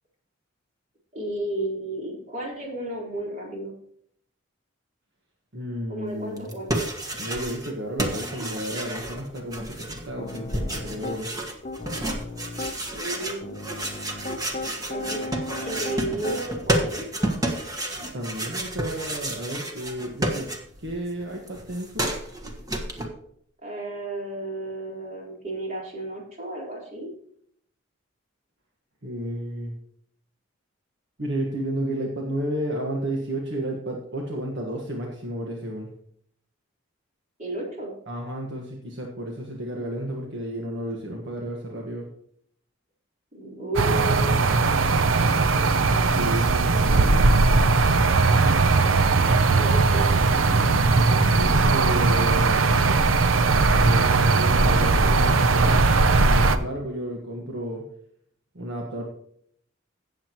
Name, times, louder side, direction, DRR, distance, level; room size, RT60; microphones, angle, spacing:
voice 1, 1.1-3.7 5.9-6.8 12.9-13.6 14.9-15.2 15.6-17.3 23.6-27.1 37.4-37.9 43.3-44.5 45.3-45.4 49.5-50.4, right 1 dB, 40° right, -3 dB, 4.0 m, -33 dB
voice 2, 5.5-6.5 7.2-11.3 18.0-20.5 20.8-22.1 29.0-29.7 31.2-35.9 38.1-42.1 46.1-47.3 51.3-52.8 53.8-57.8 58.5-59.0, right 1 dB, 65° right, 0 dB, 1.5 m, -32 dB
sound 1, 6.4-7.7 8.0-21.0 21.2-23.1, right 1 dB, 20° right, 1.4 m, -30 dB
Piano, 10.2-11.2 11.6-12.8 13.4-16.6, left 2 dB, 35° left, 0.8 m, -36 dB
sound 2, 43.7-56.6, right 3 dB, 85° right, 0.7 m, -19 dB
17.0 x 7.5 x 3.0 m, 0.67 s
head